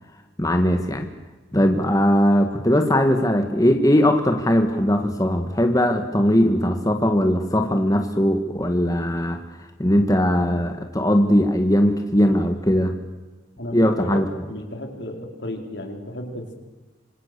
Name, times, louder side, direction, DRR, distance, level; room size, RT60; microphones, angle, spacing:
voice 1, 0.4-1.1 1.5-13.0 13.7-14.3, equal, 20° left, 5 dB, 1.7 m, -19 dB
voice 2, 13.6-16.6, left 1 dB, 75° left, 4 dB, 4.5 m, -33 dB
26.5 x 26.5 x 6.9 m, 1.2 s
head